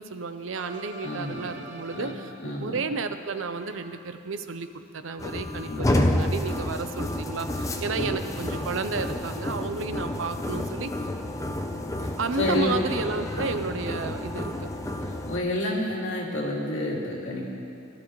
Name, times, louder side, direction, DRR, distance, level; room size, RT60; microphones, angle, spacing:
voice 1, 0.0-10.9 12.2-14.7, right 4 dB, 85° right, 10 dB, 0.6 m, -32 dB
sound 1, 0.5-2.5 3.6-4.5 5.9-6.8 8.1-9.0, right 2 dB, 40° right, 1.0 m, -46 dB
voice 2, 1.0-1.5 1.9-2.8 5.7-6.3 8.0-8.4 12.0-12.7 15.0-17.4, left 1 dB, 75° left, -4 dB, 2.5 m, -30 dB
sound 2, 5.2-15.4, left 1 dB, 15° left, 0.6 m, -30 dB
18.5 x 12.0 x 3.2 m, 2.6 s
head